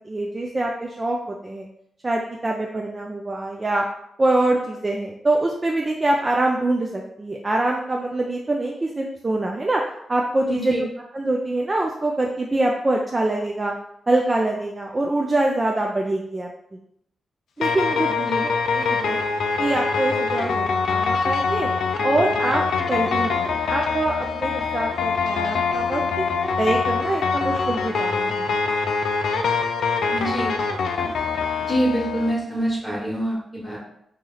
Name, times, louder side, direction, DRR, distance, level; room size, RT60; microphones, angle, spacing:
voice 1, 0.0-1.7 2.0-3.8 4.2-9.8 10.1-10.7 11.1-13.7 14.1-16.8 17.6-18.1 18.4-19.2 19.6-21.7 22.0-22.6 22.9-26.3 26.6-28.6, right 2 dB, 25° right, 0 dB, 0.4 m, -24 dB
voice 2, 10.5-10.8 18.2-18.4 30.1-30.5 30.9-31.1 31.6-33.8, right 1 dB, ahead, -5 dB, 1.4 m, -25 dB
sound 1, 17.6-32.3, left 5 dB, 85° left, 0.4 m, -24 dB
3.0 x 2.9 x 3.8 m, 0.75 s
wide cardioid pair, 115°, 0 cm